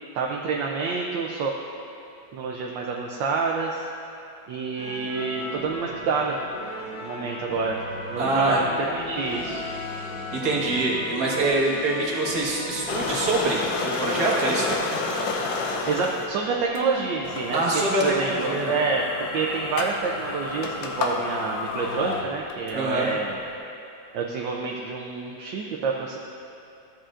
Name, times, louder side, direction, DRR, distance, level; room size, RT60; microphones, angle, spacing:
voice 1, 0.1-1.5 2.3-3.8 4.5-6.4 7.0-7.8 8.1-9.6 15.8-19.0 19.3-23.4 24.1-26.2, right 4 dB, 75° right, -1 dB, 1.3 m, -28 dB
sound 1, 4.8-15.1, left 1 dB, 55° left, 1.4 m, -36 dB
voice 2, 8.2-8.6 10.3-14.8 17.5-18.7 22.7-23.1, right 2 dB, 55° right, -4 dB, 1.9 m, -24 dB
sound 2, 12.9-16.3 16.7-16.8 17.2-22.7, left 3 dB, 85° left, 1.5 m, -30 dB
13.5 x 8.7 x 2.5 m, 2.7 s
omnidirectional pair, 2.1 m